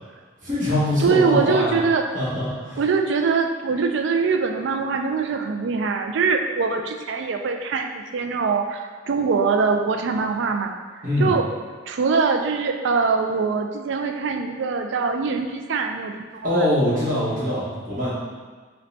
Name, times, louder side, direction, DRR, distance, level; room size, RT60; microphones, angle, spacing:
voice 1, 0.4-1.8 2.1-2.8 11.0-11.3 16.4-18.1, left 1 dB, 45° right, -9 dB, 1.3 m, -23 dB
voice 2, 1.0-2.1 2.8-10.7 11.2-11.4 11.9-16.7, right 5 dB, 65° right, 4 dB, 0.3 m, -23 dB
5.2 x 2.2 x 2.7 m, 1.5 s
head